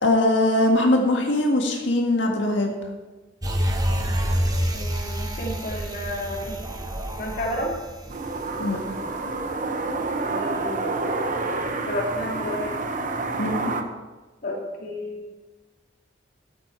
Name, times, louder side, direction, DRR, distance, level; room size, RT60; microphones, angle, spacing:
voice 1, 0.0-2.7 8.6-8.8 13.4-13.7, left 1 dB, 75° left, 2 dB, 1.7 m, -21 dB
sound 1, 3.4-9.0 9.4-9.5, equal, 20° right, 1.1 m, -27 dB
voice 2, 4.7-6.6 7.2-7.7 10.3-11.0 11.9-12.8 14.4-15.2, left 1 dB, 50° left, -2 dB, 2.3 m, -31 dB
sound 2, 8.1-13.8, right 3 dB, 45° right, 1.0 m, -28 dB
13.0 x 8.1 x 4.5 m, 1.2 s
head